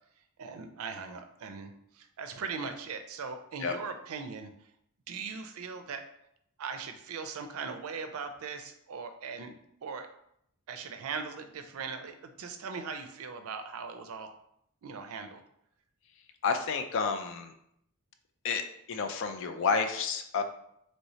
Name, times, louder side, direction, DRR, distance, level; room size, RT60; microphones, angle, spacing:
voice 1, 0.4-4.7 5.1-6.1 6.6-10.1 10.7-14.3 14.8-15.4, right 5 dB, 75° right, 7 dB, 0.4 m, -40 dB
voice 2, 16.4-17.5 18.4-20.4, left 5 dB, 60° left, 7 dB, 0.4 m, -30 dB
3.1 x 3.0 x 2.7 m, 0.73 s
head